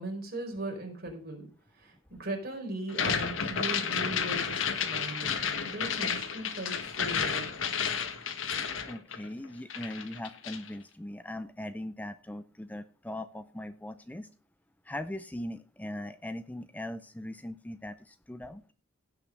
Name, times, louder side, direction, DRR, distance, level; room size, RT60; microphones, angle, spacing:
voice 1, 0.0-5.4 5.6-7.5, right 2 dB, 50° right, 2 dB, 4.5 m, -39 dB
sound 1, 2.9-9.5 9.7-10.7, left 6 dB, 70° left, 1.5 m, -31 dB
voice 2, 8.9-14.3 14.8-18.6, left 1 dB, 10° left, 11 dB, 0.5 m, -40 dB
16.5 x 5.8 x 5.3 m, 0.38 s
head